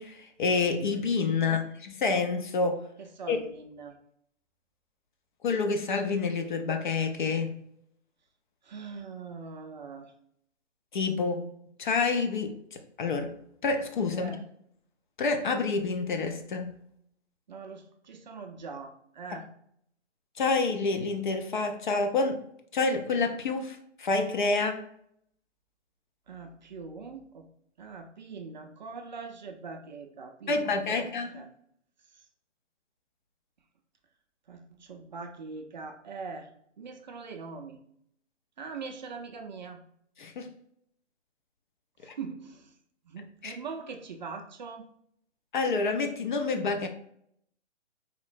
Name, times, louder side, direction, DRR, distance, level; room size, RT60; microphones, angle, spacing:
voice 1, 0.0-2.9 3.3-3.4 5.4-7.5 10.9-11.5 11.8-13.3 13.6-14.4 15.2-16.7 20.4-22.4 22.7-24.8 30.5-31.3 40.2-40.5 42.0-42.1 43.4-43.6 45.5-46.9, left 4 dB, 40° left, 6 dB, 0.4 m, -28 dB
voice 2, 1.3-1.7 3.0-4.0 8.6-10.1 14.1-14.4 17.5-19.5 26.3-27.5 27.8-31.1 31.3-31.5 32.1-32.2 34.5-36.5 36.8-37.8 38.6-39.8 42.0-42.8 43.1-44.9, right 4 dB, 40° right, 4 dB, 0.4 m, -42 dB
4.2 x 2.9 x 2.5 m, 0.70 s
figure-of-eight pair, 135°, 37 cm